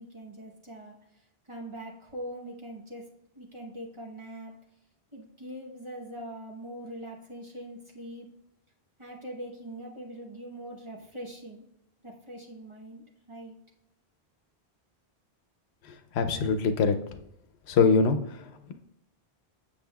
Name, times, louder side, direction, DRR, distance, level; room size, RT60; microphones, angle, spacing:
voice 1, 0.0-4.5 5.1-8.3 9.0-11.7 12.0-13.6, right 1 dB, 30° right, -1 dB, 1.0 m, -42 dB
voice 2, 15.8-17.0 17.7-18.5, left 5 dB, 85° left, 8 dB, 0.9 m, -24 dB
7.3 x 6.9 x 2.3 m, 0.81 s
omnidirectional pair, 1.1 m